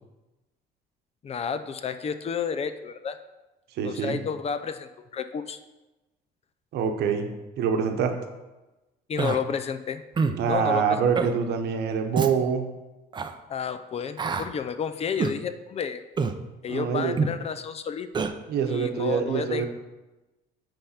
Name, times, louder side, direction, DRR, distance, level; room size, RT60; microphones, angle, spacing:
voice 1, 1.2-3.2 3.8-5.6 9.1-10.0 10.5-11.0 13.5-16.0 16.6-18.2 18.7-19.7, left 6 dB, 40° left, 11 dB, 0.5 m, -31 dB
voice 2, 3.8-4.2 6.7-7.3 7.6-8.1 10.3-12.7 16.7-17.2 18.5-19.7, right 7 dB, 75° right, 5 dB, 1.0 m, -25 dB
Human voice, 9.2-9.4 10.2-10.4 11.1-11.3 12.1-12.3 13.1-13.3 14.2-14.5 15.2-15.4 16.2-16.4 17.2-17.4 18.1-18.3, right 5 dB, 25° right, 0.5 m, -26 dB
8.8 x 3.5 x 5.7 m, 1.1 s
cardioid pair, 110°, 17 cm